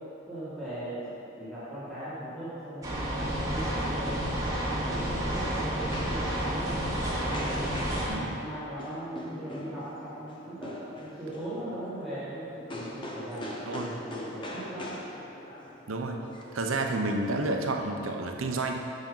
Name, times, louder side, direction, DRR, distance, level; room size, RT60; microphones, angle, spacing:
voice 1, 0.3-1.0 1.4-4.5 4.8-7.7 8.2-15.0, right 1 dB, ahead, -14 dB, 2.1 m, -39 dB
sound 1, 2.8-8.1, right 1 dB, 15° right, 1.4 m, -30 dB
sound 2, 5.0-17.2, left 1 dB, 25° left, 0.8 m, -43 dB
voice 2, 8.1-8.4 13.7-13.9 15.9-16.2 16.5-18.7, right 2 dB, 90° right, 3 dB, 0.8 m, -30 dB
7.5 x 6.4 x 5.5 m, 2.9 s
head